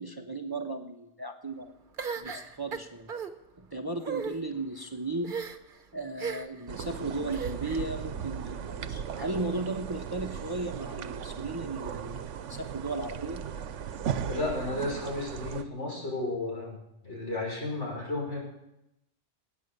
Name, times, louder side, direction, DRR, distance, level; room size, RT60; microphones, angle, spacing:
voice 1, 0.0-1.7 2.2-3.1 3.6-5.4 5.9-13.4, right 2 dB, 20° right, 5 dB, 0.9 m, -36 dB
sound 1, 2.0-3.3 4.0-4.3 5.2-5.7 6.2-6.6 7.3-7.9, right 6 dB, 45° right, 1.2 m, -36 dB
sound 2, 6.7-15.6, right 8 dB, 85° right, 1.1 m, -37 dB
voice 2, 14.3-16.8 17.0-18.4, left 2 dB, 75° left, -3 dB, 6.3 m, -33 dB
19.5 x 9.5 x 6.7 m, 0.87 s
omnidirectional pair, 1.2 m